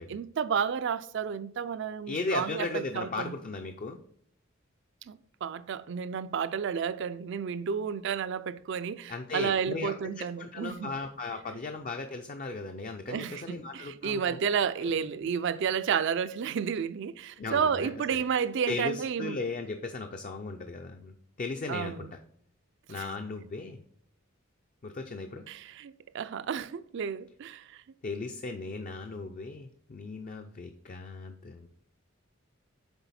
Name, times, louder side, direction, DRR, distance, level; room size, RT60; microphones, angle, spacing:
voice 1, 0.1-3.3 5.1-10.9 13.1-19.4 21.7-22.1 22.9-23.0 25.5-27.6, right 7 dB, 60° right, 0.4 m, -31 dB
voice 2, 2.1-4.0 9.1-14.4 14.8-15.1 17.4-17.9 18.7-22.2 22.9-23.8 24.8-25.5 28.0-31.7, left 3 dB, 40° left, 0.4 m, -37 dB
6.9 x 4.0 x 4.2 m
head